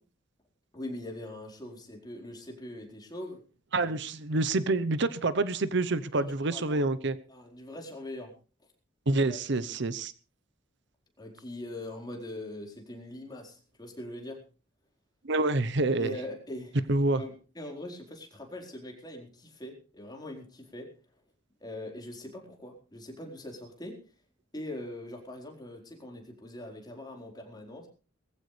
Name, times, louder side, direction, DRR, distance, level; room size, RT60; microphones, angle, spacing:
voice 1, 0.7-3.4 3.8-4.0 6.1-6.8 7.3-8.3 9.3-10.0 11.2-14.4 15.9-16.8 17.1-20.9 21.6-24.0 24.5-27.9, left 1 dB, 20° left, 2 dB, 4.4 m, -42 dB
voice 2, 3.7-7.2 9.1-10.1 15.2-16.1 16.9-17.2, right 2 dB, 65° right, 14 dB, 0.9 m, -27 dB
20.5 x 15.0 x 3.3 m, 0.36 s
head